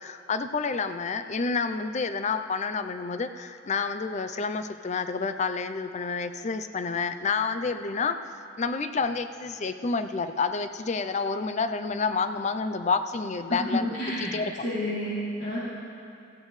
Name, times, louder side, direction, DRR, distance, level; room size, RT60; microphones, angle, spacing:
voice 1, 0.0-8.2 8.6-13.9 14.2-14.5, left 4 dB, 40° left, 10 dB, 0.5 m, -29 dB
voice 2, 13.5-14.3 14.6-15.6, left 1 dB, 65° left, -9 dB, 3.0 m, -29 dB
16.5 x 14.5 x 3.2 m, 2.5 s
head